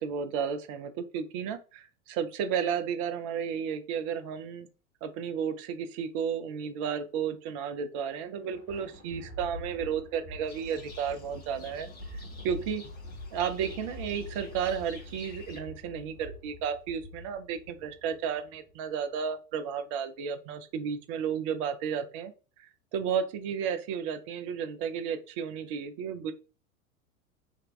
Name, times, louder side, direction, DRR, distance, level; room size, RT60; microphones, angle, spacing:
voice 1, 0.0-4.7 5.0-12.8 13.3-22.3 22.6-26.3, right 7 dB, 25° right, 8 dB, 0.3 m, -33 dB
Thunder, 8.2-18.8, left 1 dB, 45° left, 1.3 m, -45 dB
Livestock farm animals working animals, 10.5-15.6, left 2 dB, 20° left, 1.1 m, -51 dB
3.5 x 2.2 x 3.3 m, 0.34 s
figure-of-eight pair, 90°, 42 cm